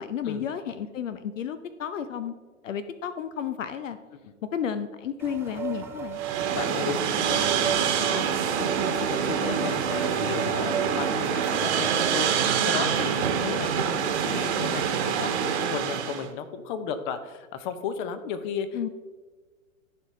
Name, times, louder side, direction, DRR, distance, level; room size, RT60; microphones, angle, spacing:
voice 1, 0.0-2.3 2.6-4.0 4.5-6.2 18.7-18.9, left 8 dB, 70° left, 12 dB, 0.7 m, -32 dB
sound 1, 5.2-11.1, right 8 dB, 5° right, 0.4 m, -34 dB
sound 2, 6.1-16.3, right 7 dB, 55° right, 1.3 m, -26 dB
voice 2, 6.5-18.7, left 7 dB, 35° left, 11 dB, 0.8 m, -34 dB
14.5 x 5.0 x 3.2 m, 1.4 s
hypercardioid pair, 115°, 40 cm